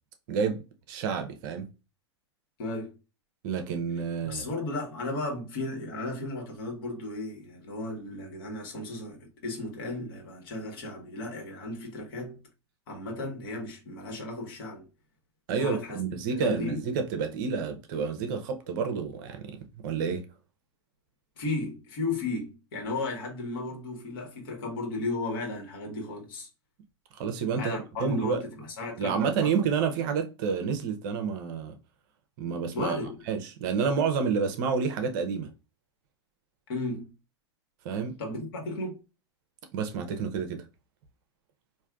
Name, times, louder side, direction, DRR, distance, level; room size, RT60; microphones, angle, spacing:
voice 1, 0.3-0.6 0.9-1.7 3.4-4.5 15.5-20.3 27.2-28.4 29.0-31.7 32.4-33.0 33.3-35.5 37.8-38.1 39.7-40.6, right 6 dB, 45° right, 0.7 m, -29 dB
voice 2, 2.6-2.9 4.2-12.4 12.9-14.9 15.6-16.0 16.3-16.8 21.4-26.5 27.5-29.5 32.7-33.2 36.7-37.1 38.2-39.0, left 2 dB, 50° left, 1.5 m, -34 dB
4.5 x 2.6 x 2.4 m
figure-of-eight pair, 95°, 15 cm